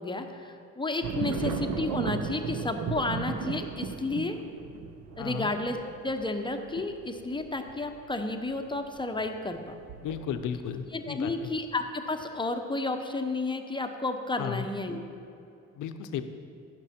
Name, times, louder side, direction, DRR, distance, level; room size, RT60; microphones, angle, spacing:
voice 1, 0.0-4.4 5.2-5.8 6.0-9.8 10.9-15.0, left 2 dB, 15° left, 6 dB, 0.8 m, -32 dB
sound 1, 1.0-10.7 11.1-11.6, right 5 dB, 70° right, 0.8 m, -36 dB
voice 2, 5.2-5.5 10.0-11.5 14.4-14.7 15.8-16.2, left 8 dB, 80° left, 9 dB, 0.7 m, -34 dB
15.5 x 6.2 x 4.3 m, 2.7 s
cardioid pair, 90°, 30 cm